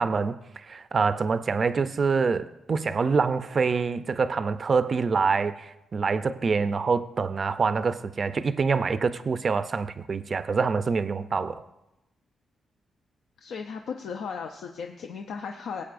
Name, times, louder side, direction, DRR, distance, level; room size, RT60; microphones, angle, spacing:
voice 1, 0.0-11.6, right 5 dB, 40° right, 0.4 m, -26 dB
voice 2, 13.4-15.8, left 6 dB, 90° left, 0.6 m, -36 dB
19.0 x 8.4 x 2.5 m
cardioid pair, 130°, 0 cm